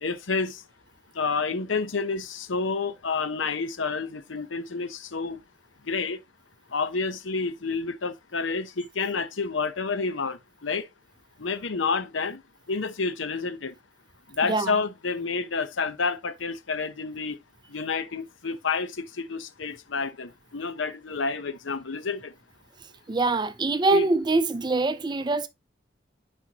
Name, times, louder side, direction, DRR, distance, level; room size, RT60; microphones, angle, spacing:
voice 1, 0.0-0.6 1.2-5.4 5.9-6.2 6.7-10.9 11.4-12.4 12.7-13.7 14.4-17.4 17.7-19.0 19.3-22.3 23.9-24.1, left 4 dB, 80° left, 0.8 m, -29 dB
voice 2, 23.1-25.5, right 3 dB, 25° right, 0.5 m, -24 dB
10.0 x 4.4 x 2.9 m
head